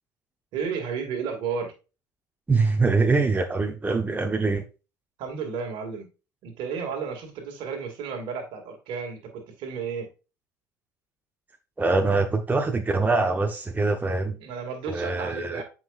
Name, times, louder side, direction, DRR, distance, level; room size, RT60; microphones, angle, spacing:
voice 1, 0.5-1.7 5.2-6.1 6.4-10.1 14.4-15.6, right 6 dB, 55° right, 2.2 m, -32 dB
voice 2, 2.5-4.6 11.8-14.4 14.9-15.6, right 3 dB, 15° right, 1.0 m, -24 dB
7.7 x 5.5 x 2.5 m
figure-of-eight pair, 60°, 10 cm